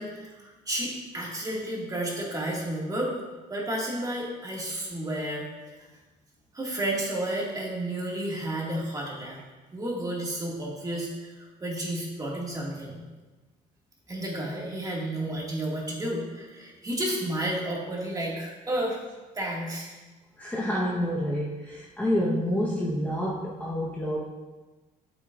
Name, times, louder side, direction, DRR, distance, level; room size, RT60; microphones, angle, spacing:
voice 1, 0.0-3.1 3.5-5.5 5.8-5.9 6.5-9.4 9.7-13.0 14.1-19.0 19.3-19.9, right 1 dB, 20° right, -4 dB, 2.3 m, -31 dB
voice 2, 20.4-24.2, equal, 10° left, -6 dB, 1.2 m, -28 dB
8.5 x 7.6 x 2.6 m, 1.2 s
cardioid pair, 110°, 17 cm